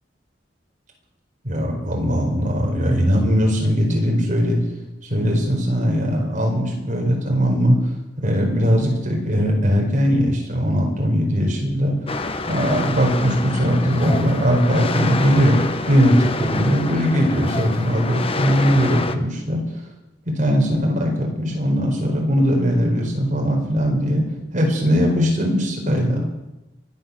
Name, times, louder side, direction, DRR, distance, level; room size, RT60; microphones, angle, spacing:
voice 1, 1.4-4.6 5.1-7.8 8.2-11.9 12.5-15.6 15.9-19.6 20.3-24.2 24.5-26.3, equal, 45° right, 0 dB, 4.8 m, -19 dB
sound 1, 12.1-19.2, left 3 dB, 30° left, 1.0 m, -27 dB
24.0 x 8.8 x 6.7 m, 1.0 s
head